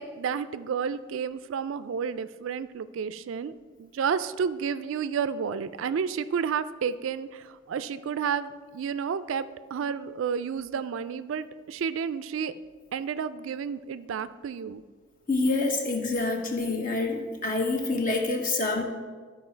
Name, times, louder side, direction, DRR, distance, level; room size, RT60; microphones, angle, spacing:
voice 1, 0.0-9.5 9.7-12.5 12.9-14.8, right 6 dB, 75° right, 14 dB, 0.3 m, -31 dB
voice 2, 15.3-18.8, left 3 dB, 40° left, 3 dB, 1.0 m, -27 dB
12.5 x 4.7 x 4.4 m, 1.5 s
head